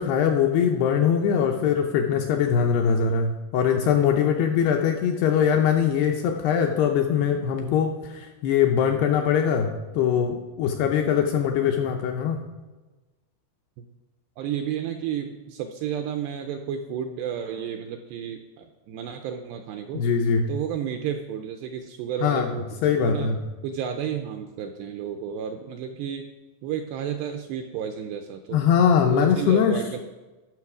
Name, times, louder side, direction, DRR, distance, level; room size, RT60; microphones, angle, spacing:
voice 1, 0.0-9.7 9.9-12.4 19.9-20.4 22.2-22.5 22.8-23.4 28.5-29.8, left 7 dB, 80° left, 2 dB, 2.4 m, -22 dB
voice 2, 14.4-20.0 20.5-23.3 23.6-26.3 26.6-28.6 29.1-30.0, right 8 dB, 85° right, 5 dB, 2.4 m, -32 dB
13.0 x 6.3 x 4.8 m, 1.2 s
omnidirectional pair, 5.3 m